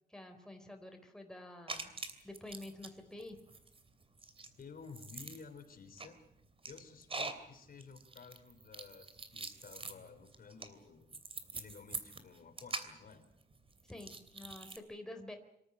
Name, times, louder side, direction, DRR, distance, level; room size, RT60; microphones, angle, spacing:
voice 1, 0.1-1.9 2.2-3.4 13.9-15.4, left 1 dB, 5° left, 4 dB, 4.1 m, -49 dB
sound 1, 1.7-2.9 3.2-14.8, right 3 dB, 35° right, 2.9 m, -45 dB
voice 2, 4.6-6.2 6.7-11.1 11.5-13.3, left 5 dB, 60° left, 7 dB, 3.8 m, -53 dB
26.0 x 14.5 x 9.9 m, 0.76 s
wide cardioid pair, 125°, 16 cm